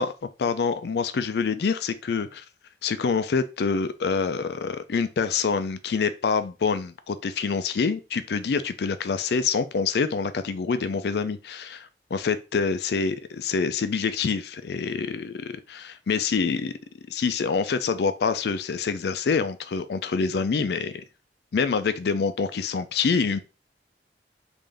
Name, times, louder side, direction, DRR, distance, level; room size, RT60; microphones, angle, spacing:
voice 1, 0.4-2.4 2.8-16.7 17.1-21.0 21.5-23.4, left 5 dB, 65° left, 0.4 m, -26 dB
3.7 x 2.6 x 3.3 m
head